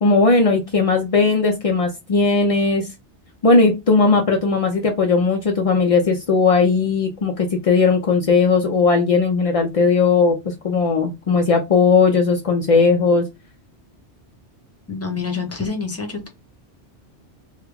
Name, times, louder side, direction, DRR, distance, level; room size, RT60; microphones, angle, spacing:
voice 1, 0.0-2.9 3.4-13.2, left 4 dB, 60° left, 0.3 m, -17 dB
voice 2, 14.9-16.3, left 5 dB, 15° left, 0.7 m, -27 dB
3.4 x 2.3 x 3.3 m
omnidirectional pair, 1.2 m